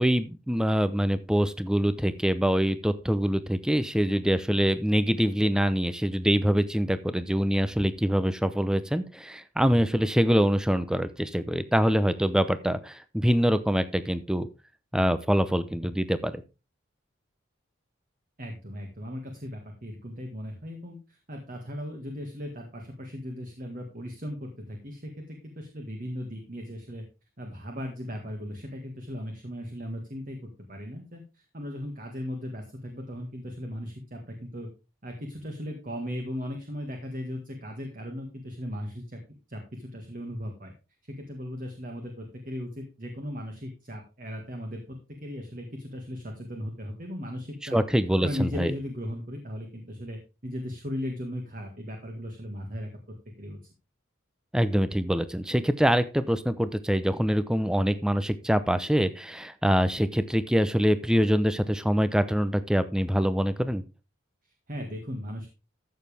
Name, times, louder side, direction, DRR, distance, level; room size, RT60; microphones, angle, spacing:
voice 1, 0.0-14.5 14.9-16.4 47.7-48.7 54.5-63.8, equal, 5° right, 12 dB, 0.6 m, -24 dB
voice 2, 18.4-27.0 27.4-34.7 35.0-39.2 39.5-40.7 41.1-47.8 48.2-52.9 53.4-53.6 64.4-65.5, equal, 45° right, 3 dB, 1.8 m, -37 dB
13.5 x 7.3 x 3.4 m, 0.30 s
head